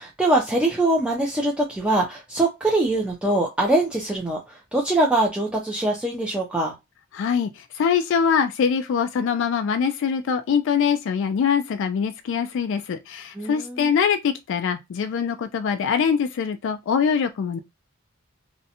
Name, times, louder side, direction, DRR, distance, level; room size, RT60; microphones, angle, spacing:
voice 1, 0.0-6.8 13.4-13.9, right 2 dB, 5° right, 0.4 m, -23 dB
voice 2, 7.1-17.6, left 6 dB, 65° left, 0.3 m, -23 dB
2.5 x 2.0 x 2.7 m
head